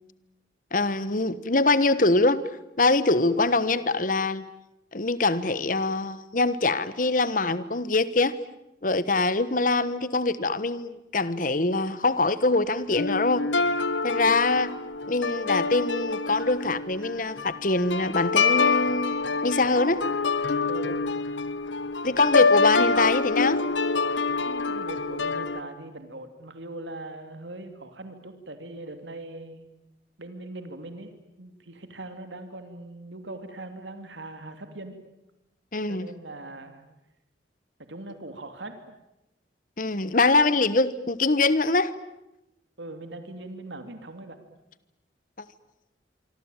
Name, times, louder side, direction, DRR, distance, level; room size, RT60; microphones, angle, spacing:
voice 1, 0.7-2.4 2.8-4.4 4.9-8.4 8.8-13.5 14.0-14.7 15.1-20.0 22.0-23.6 35.7-36.1 39.8-41.9, left 3 dB, 45° left, 1.3 m, -23 dB
sound 1, 13.0-25.6, left 4 dB, 85° left, 1.1 m, -26 dB
voice 2, 20.6-21.1 24.4-29.7 30.2-31.1 31.4-35.0 35.9-36.8 37.9-38.8 42.8-44.4, right 2 dB, 85° right, 2.8 m, -40 dB
25.5 x 25.0 x 9.1 m
head